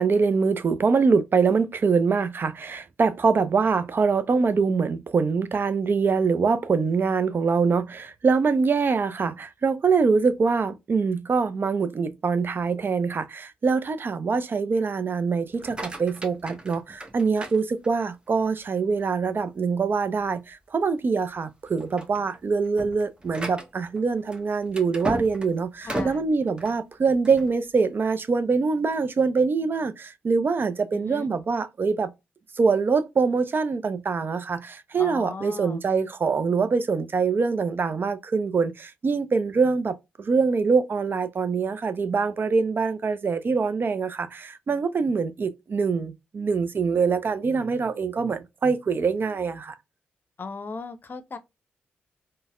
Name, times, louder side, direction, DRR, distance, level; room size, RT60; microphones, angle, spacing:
voice 1, 0.0-32.1 32.6-49.7, right 5 dB, 45° right, 0.4 m, -24 dB
sound 1, 15.5-18.3 18.8-19.2 19.7-19.8 20.2-20.4 21.0-21.3 21.7-27.5, right 1 dB, 20° right, 0.9 m, -36 dB
voice 2, 25.8-26.2 30.9-31.3 35.0-35.8 50.4-51.4, left 4 dB, 40° left, 0.6 m, -37 dB
3.9 x 2.1 x 2.4 m
hypercardioid pair, 40°, 5 cm